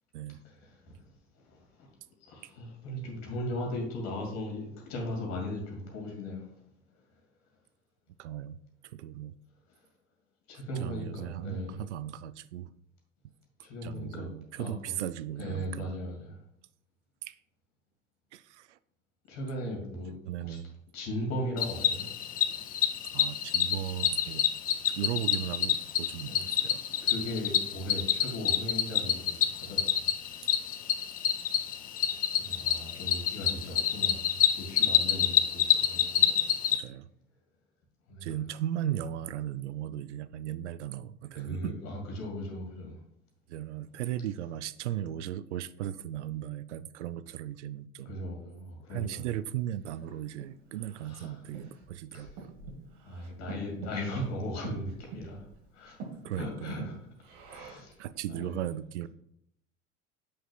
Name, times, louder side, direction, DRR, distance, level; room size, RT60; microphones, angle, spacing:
voice 1, 0.4-1.0 1.4-1.9 2.2-6.5 9.7-9.8 10.5-11.8 13.6-14.3 14.6-14.9 15.4-16.4 19.3-20.1 20.5-20.6 20.9-22.1 26.3-26.4 27.0-30.1 32.4-36.6 38.1-38.4 41.3-43.0 48.1-49.3 51.1-51.3 52.1-52.4 53.0-55.5 55.7-56.0 56.4-57.0 57.5-58.0 58.3-58.5, left 1 dB, 45° left, 2.3 m, -38 dB
voice 2, 8.2-8.6 8.9-9.3 10.8-12.7 13.8-15.9 17.2-17.4 18.3-18.8 20.2-20.8 23.1-24.4 24.9-26.8 36.7-37.1 38.2-41.7 43.5-48.1 48.9-52.3 56.2-57.0 58.0-59.1, right 11 dB, 70° right, 0.5 m, -37 dB
Cricket, 21.6-36.8, left 10 dB, 25° left, 0.4 m, -28 dB
Breathing, 49.5-58.0, right 4 dB, 50° right, 1.6 m, -47 dB
7.7 x 6.4 x 2.3 m
figure-of-eight pair, 70°, 37 cm